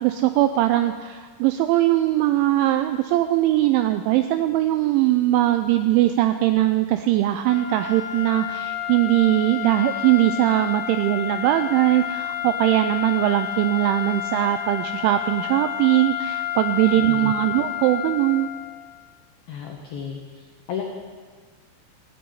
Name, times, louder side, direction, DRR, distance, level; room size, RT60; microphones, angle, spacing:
voice 1, 0.0-18.5, right 14 dB, 85° right, 9 dB, 2.7 m, -20 dB
sound 1, 7.4-18.9, left 12 dB, 60° left, 3.0 m, -30 dB
voice 2, 16.9-17.3 19.5-20.8, left 7 dB, 90° left, 1 dB, 2.0 m, -34 dB
15.0 x 6.8 x 9.4 m, 1.5 s
omnidirectional pair, 5.9 m